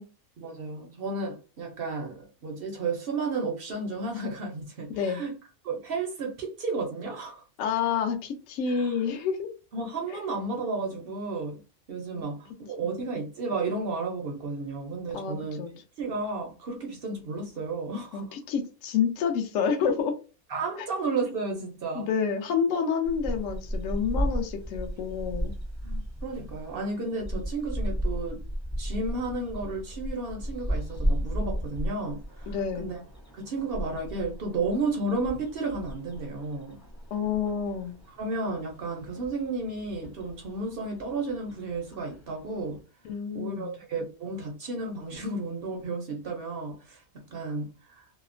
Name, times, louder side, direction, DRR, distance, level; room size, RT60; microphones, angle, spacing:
voice 1, 0.4-5.3 5.6-7.4 8.7-8.9 9.7-11.6 11.9-15.6 16.0-18.2 20.5-22.1 25.8-28.4 28.8-33.0 33.3-36.8 38.1-42.8 43.3-47.0 47.3-48.0, right 3 dB, 60° right, 0.6 m, -33 dB
voice 2, 4.9-5.2 7.6-9.5 12.8-12.9 15.1-15.7 18.1-20.1 21.9-25.5 32.5-32.9 37.1-38.0 43.0-43.7, left 6 dB, 70° left, 0.8 m, -28 dB
sound 1, 23.0-42.8, equal, 25° left, 0.3 m, -35 dB
2.8 x 2.0 x 2.4 m
omnidirectional pair, 1.6 m